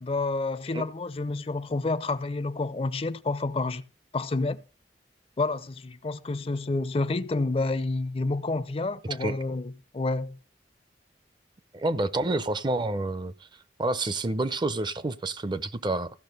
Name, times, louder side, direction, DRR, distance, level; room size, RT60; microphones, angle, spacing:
voice 1, 0.0-3.8 4.1-4.6 5.4-10.4, left 3 dB, 35° left, 0.5 m, -29 dB
voice 2, 11.7-13.3 13.8-16.1, right 2 dB, 25° right, 0.5 m, -28 dB
15.0 x 6.2 x 5.3 m
head